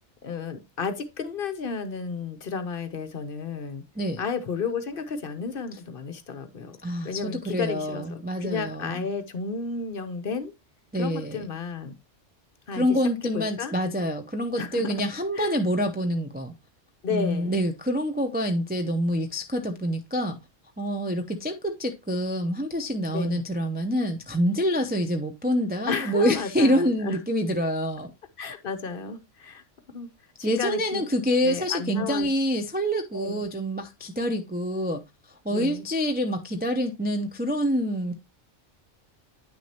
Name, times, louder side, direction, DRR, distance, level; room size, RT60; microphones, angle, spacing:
voice 1, 0.2-3.8 4.2-6.8 7.0-10.5 10.9-12.0 12.7-13.0 13.3-13.7 14.6-15.0 15.3-15.5 17.0-17.6 23.1-23.4 25.9-27.2 28.4-30.1 30.4-31.0 31.4-32.3 33.1-33.5 35.5-35.9, left 5 dB, 55° left, 0.9 m, -32 dB
voice 2, 6.8-9.0 10.9-11.5 12.7-16.5 17.1-20.4 20.8-28.1 30.4-35.0 35.4-38.1, equal, 15° right, 0.3 m, -26 dB
8.9 x 6.2 x 2.8 m
omnidirectional pair, 1.3 m